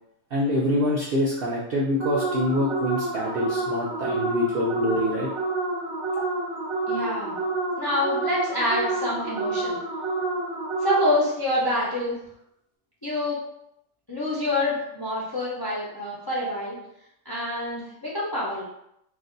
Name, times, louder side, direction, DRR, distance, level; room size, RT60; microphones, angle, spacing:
voice 1, 0.3-5.3, left 1 dB, 65° right, -5 dB, 0.6 m, -25 dB
sound 1, 2.0-11.4, right 2 dB, 20° right, 0.7 m, -29 dB
voice 2, 6.9-7.4 7.8-9.8 10.8-12.2 13.0-13.4 14.1-16.8 17.3-18.6, left 1 dB, 30° left, -7 dB, 0.4 m, -26 dB
2.6 x 2.2 x 3.8 m, 0.78 s
omnidirectional pair, 1.5 m